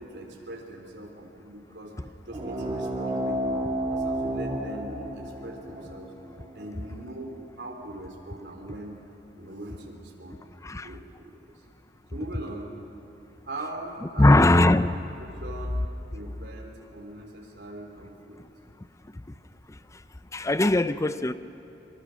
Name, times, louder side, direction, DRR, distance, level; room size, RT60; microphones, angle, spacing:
voice 1, 0.0-1.9 2.3-3.6 3.9-6.1 6.5-9.0 9.4-10.4 10.8-11.6 12.1-12.7 13.4-14.5 15.2-15.8 16.1-18.4, right 1 dB, 75° right, 0 dB, 3.4 m, -41 dB
sound 1, 2.3-7.4, right 1 dB, 25° right, 2.8 m, -31 dB
voice 2, 14.2-15.0 20.3-21.3, left 1 dB, 20° left, 12 dB, 0.6 m, -20 dB
24.0 x 24.0 x 6.4 m, 2.9 s
head